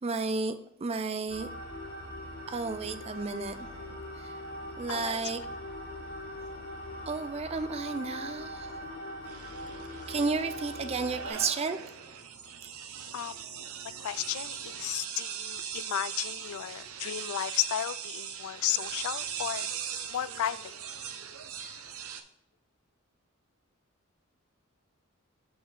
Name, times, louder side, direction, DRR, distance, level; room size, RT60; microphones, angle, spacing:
voice 1, 0.0-1.5 2.5-4.4 4.8-5.5 7.1-8.9 10.1-12.2, right 4 dB, 30° right, 0.4 m, -33 dB
sound 1, 1.3-11.3, equal, 45° left, 1.6 m, -41 dB
voice 2, 4.9-5.2 13.1-13.4 14.0-19.7 20.1-20.8, left 12 dB, 80° left, 0.3 m, -33 dB
sound 2, 9.2-22.2, right 8 dB, 80° right, 0.7 m, -40 dB
7.9 x 5.1 x 3.8 m
head